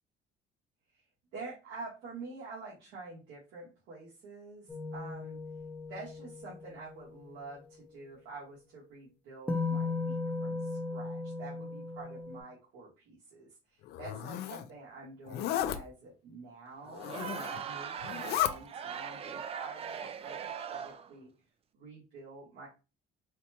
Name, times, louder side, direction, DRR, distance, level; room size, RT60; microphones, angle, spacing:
voice 1, 1.3-5.4 5.9-21.3 21.7-22.7, right 3 dB, 90° right, -6 dB, 1.4 m, -48 dB
sound 1, 4.7-7.0 9.5-12.4, left 3 dB, 10° left, 0.6 m, -36 dB
Zipper (clothing), 13.9-14.7 15.3-15.8 16.9-17.6 18.0-18.5, left 12 dB, 75° left, 0.4 m, -34 dB
Crowd, 17.0-21.1, right 7 dB, 35° right, 0.3 m, -40 dB
4.0 x 2.2 x 2.8 m, 0.30 s
cardioid pair, 110°, 17 cm